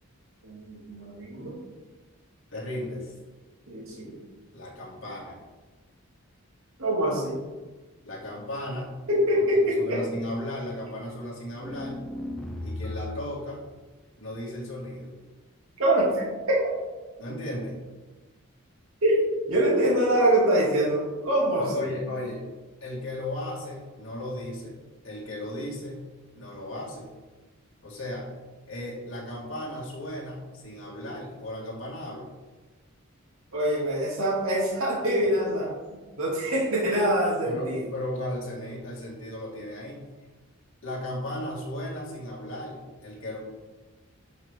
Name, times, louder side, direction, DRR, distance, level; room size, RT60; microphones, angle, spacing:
voice 1, 0.4-1.6 3.7-4.1 6.8-7.3 9.1-10.0 15.8-16.6 19.0-19.2 19.5-21.7 33.5-35.7 36.2-37.8, right 1 dB, 75° right, -5 dB, 2.4 m, -24 dB
voice 2, 2.5-3.1 4.5-5.4 8.0-9.0 9.3-9.4 9.8-12.0 12.6-13.6 14.2-15.1 17.2-17.7 21.6-22.4 22.8-24.8 25.0-26.0 26.3-27.1 27.8-28.3 28.7-32.3 37.4-40.0 40.8-43.4, left 1 dB, 65° left, -5 dB, 2.2 m, -35 dB
sound 1, 11.6-13.4, left 1 dB, 5° left, 0.7 m, -36 dB
10.5 x 5.6 x 3.7 m, 1.2 s
head